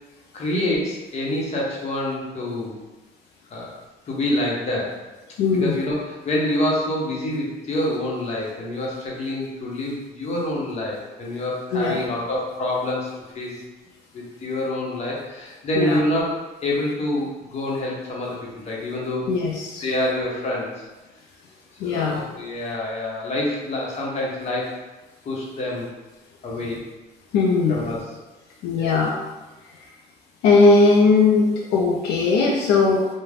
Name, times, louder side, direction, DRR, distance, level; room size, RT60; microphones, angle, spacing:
voice 1, 0.3-2.8 3.5-3.7 4.1-5.0 5.5-13.1 13.3-13.5 14.1-16.4 16.6-19.3 19.8-20.8 21.8-24.8 25.2-25.9 26.4-26.8 27.7-28.1 28.7-29.0, left 1 dB, 40° left, -4 dB, 0.8 m, -26 dB
voice 2, 5.4-5.8 11.7-12.0 15.8-16.0 19.3-19.9 21.8-22.2 27.3-27.9 28.6-29.1 30.4-33.1, left 3 dB, 85° left, -1 dB, 0.4 m, -18 dB
2.4 x 2.1 x 3.3 m, 1.1 s
cardioid pair, 110°, 17 cm